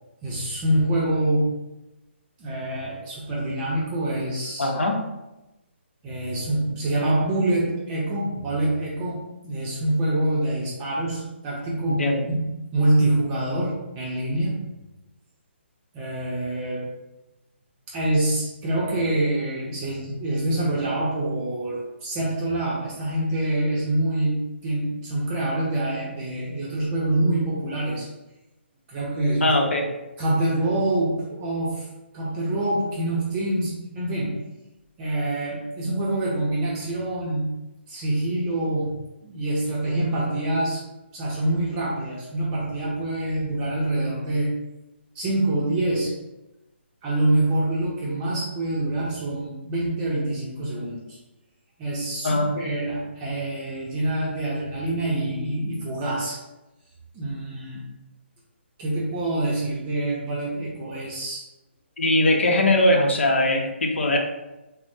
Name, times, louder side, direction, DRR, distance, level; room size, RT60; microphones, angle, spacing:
voice 1, 0.2-1.5 2.4-4.7 6.0-14.6 15.9-16.9 17.9-28.1 28.9-29.4 30.2-31.9 32.1-34.4 35.0-37.5 37.9-39.0 39.2-40.8 41.1-44.5 45.1-46.1 47.0-51.2 51.8-56.4 57.1-57.8 58.8-61.4, right 1 dB, 20° right, -6 dB, 0.6 m, -26 dB
voice 2, 4.6-5.0 12.0-12.2 29.4-29.9 52.2-52.6 62.0-64.2, left 1 dB, 75° left, 2 dB, 0.7 m, -21 dB
4.2 x 2.0 x 2.6 m, 1.0 s
hypercardioid pair, 155°, 7 cm